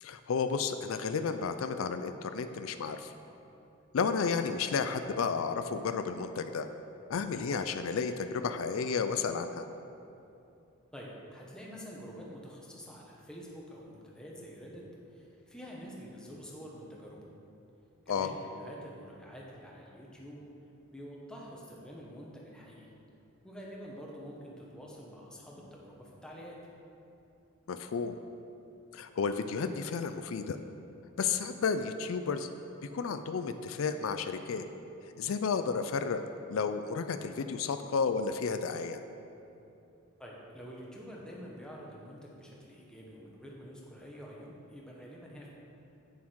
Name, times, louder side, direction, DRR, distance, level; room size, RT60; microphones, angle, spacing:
voice 1, 0.0-3.1 3.9-6.7 7.1-9.7 18.1-18.3 27.7-28.2 28.9-30.6 31.2-32.5 32.9-34.6 35.2-36.2 36.5-39.0, left 5 dB, 80° left, 9 dB, 0.4 m, -32 dB
voice 2, 10.9-14.8 15.1-17.3 18.0-20.4 20.9-22.9 23.4-26.6 40.2-45.5, equal, 5° left, -3 dB, 1.2 m, -47 dB
8.5 x 7.1 x 4.6 m, 2.7 s
head